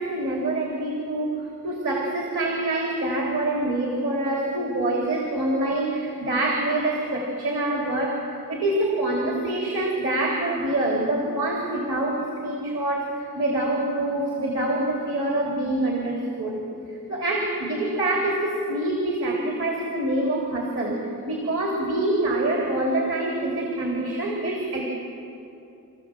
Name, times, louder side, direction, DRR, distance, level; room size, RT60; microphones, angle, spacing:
voice 1, 0.0-16.6 16.9-24.9, right 1 dB, 60° right, -1 dB, 2.9 m, -26 dB
26.0 x 15.0 x 7.6 m, 2.8 s
head